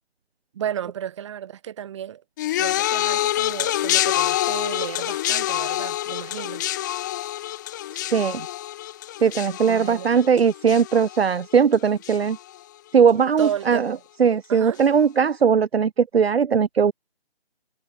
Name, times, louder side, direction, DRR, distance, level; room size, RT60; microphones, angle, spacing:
voice 1, 0.5-2.2 2.6-6.7 9.7-10.3 13.4-14.0 14.5-14.8, right 10 dB, 25° right, 6.5 m, -33 dB
sound 1, 2.4-11.7 12.0-12.6 13.4-13.5, left 14 dB, 15° left, 2.4 m, -26 dB
voice 2, 8.1-8.5 9.2-12.4 12.9-13.9 14.2-16.9, right 6 dB, 65° right, 0.8 m, -19 dB
figure-of-eight pair, 165°, 32 cm